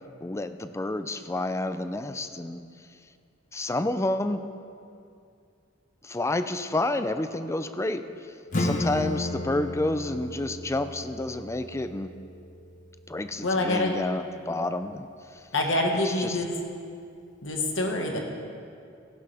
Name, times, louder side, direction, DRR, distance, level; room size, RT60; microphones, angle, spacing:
voice 1, 0.2-2.6 3.5-4.5 6.0-12.1 13.1-15.1 15.3-15.4 16.0-16.4, left 2 dB, 15° left, 10 dB, 0.4 m, -30 dB
Acoustic guitar / Strum, 8.5-13.7, left 2 dB, 40° left, 0.9 m, -34 dB
voice 2, 13.4-13.9 15.5-16.5 17.4-18.2, left 2 dB, 70° left, 1 dB, 1.6 m, -26 dB
16.0 x 11.5 x 3.5 m, 2.4 s
head